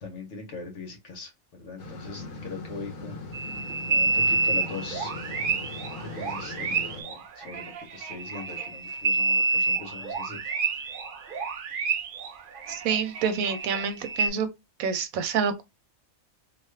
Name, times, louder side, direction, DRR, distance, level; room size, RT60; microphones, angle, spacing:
voice 1, 0.0-5.1 6.0-10.4, left 4 dB, 60° left, 1.2 m, -41 dB
sound 1, 1.8-7.0, left 2 dB, 85° left, 1.3 m, -40 dB
sound 2, 3.3-14.3, right 4 dB, 65° right, 0.5 m, -29 dB
voice 2, 12.7-14.5 14.8-15.6, right 6 dB, 90° right, 1.1 m, -27 dB
2.8 x 2.4 x 3.1 m
omnidirectional pair, 1.4 m